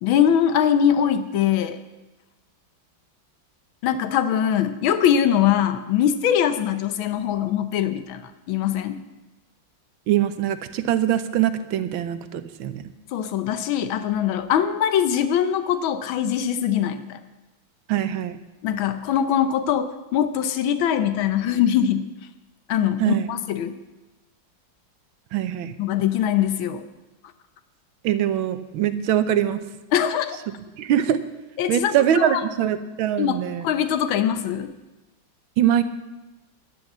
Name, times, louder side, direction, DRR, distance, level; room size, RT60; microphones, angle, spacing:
voice 1, 0.0-1.8 3.8-9.0 13.1-17.2 18.6-22.1 22.7-23.8 25.8-26.8 29.9-30.4 31.6-32.4 33.2-34.7, left 9 dB, 85° left, 10 dB, 1.6 m, -22 dB
voice 2, 10.1-12.8 17.9-18.4 23.0-23.3 25.3-25.8 28.0-29.6 30.8-31.2 31.7-33.7 35.6-35.8, right 11 dB, 90° right, 11 dB, 1.7 m, -22 dB
12.0 x 10.5 x 7.3 m, 1.1 s
omnidirectional pair, 2.1 m